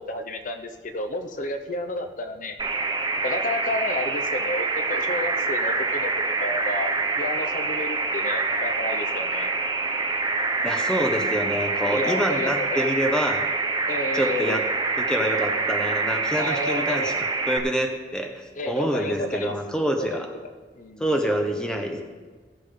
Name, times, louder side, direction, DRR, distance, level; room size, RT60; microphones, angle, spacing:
voice 1, 0.0-2.6 3.2-6.1 6.4-9.5 11.9-12.9 13.9-14.7 16.4-17.1 18.6-19.5 20.0-20.3 20.8-21.0, left 1 dB, 45° left, 6 dB, 0.7 m, -31 dB
sound 1, 2.6-17.6, right 3 dB, 25° right, 0.8 m, -26 dB
voice 2, 10.6-13.5 14.1-14.6 15.0-20.3 21.0-22.0, equal, 5° left, 3 dB, 0.9 m, -26 dB
17.0 x 7.4 x 3.7 m, 1.4 s
head